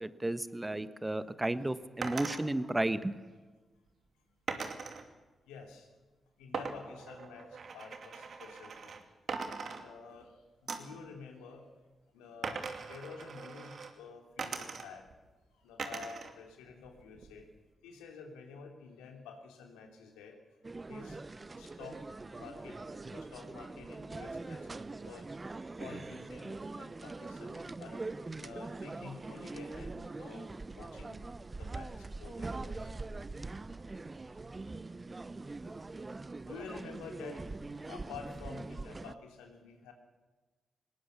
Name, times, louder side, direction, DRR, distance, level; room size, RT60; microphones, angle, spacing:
voice 1, 0.0-3.1, right 1 dB, 20° right, 14 dB, 1.3 m, -33 dB
sound 1, 2.0-2.4 4.5-5.0 6.5-9.0 9.3-10.3 10.7-11.0 12.4-13.9 14.4-15.1 15.8-16.3 16.7-17.5, right 5 dB, 60° right, 2.5 m, -40 dB
voice 2, 5.5-5.9 6.4-8.9 9.8-11.7 12.1-15.1 15.5-17.5 17.8-20.4 20.9-21.2 21.6-22.1 22.4-25.3 25.8-28.0 28.4-31.2 31.5-33.0 33.8-33.9 34.3-34.7 36.4-37.5 37.9-39.9, left 5 dB, 90° left, 4 dB, 3.0 m, -50 dB
sound 2, 20.6-39.2, right 3 dB, 35° right, 0.8 m, -43 dB
20.5 x 18.5 x 7.0 m, 1.2 s
hypercardioid pair, 40°, 0 cm